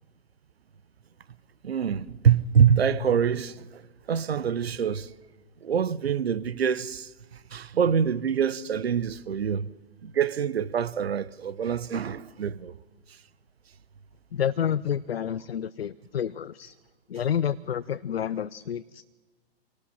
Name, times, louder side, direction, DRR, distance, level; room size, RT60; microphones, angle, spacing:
voice 1, 1.6-5.1 5.6-9.7 10.0-12.7, right 7 dB, 75° right, 0.9 m, -25 dB
voice 2, 14.3-16.7 17.1-19.0, left 9 dB, 75° left, 0.6 m, -29 dB
25.5 x 18.5 x 5.8 m
figure-of-eight pair, 120°, 31 cm